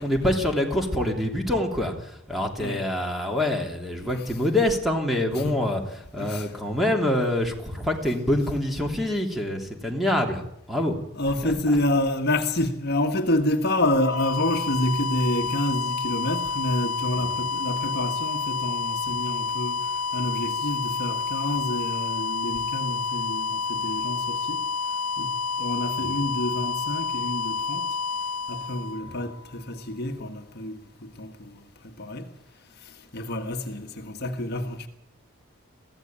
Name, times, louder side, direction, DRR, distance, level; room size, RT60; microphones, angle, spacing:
voice 1, 0.0-1.9 2.3-5.8 6.1-10.4 10.7-11.0 26.0-26.1, left 1 dB, ahead, 3.1 m, -25 dB
voice 2, 4.0-4.4 5.3-5.6 6.2-6.6 11.1-24.6 25.2-25.3 25.6-27.9 28.5-32.3 32.8-34.9, left 1 dB, 50° left, 1.5 m, -28 dB
sound 1, 13.8-29.6, left 4 dB, 85° left, 0.7 m, -29 dB
23.0 x 16.0 x 8.8 m
head